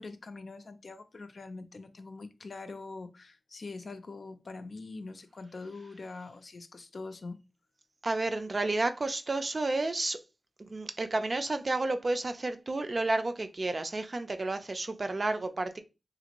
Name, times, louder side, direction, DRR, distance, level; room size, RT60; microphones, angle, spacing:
voice 1, 0.0-7.4, left 3 dB, 65° left, 0.4 m, -43 dB
voice 2, 8.0-10.2 10.6-15.8, right 2 dB, 45° right, 0.4 m, -31 dB
3.0 x 2.5 x 2.9 m
wide cardioid pair, 70°, 0 cm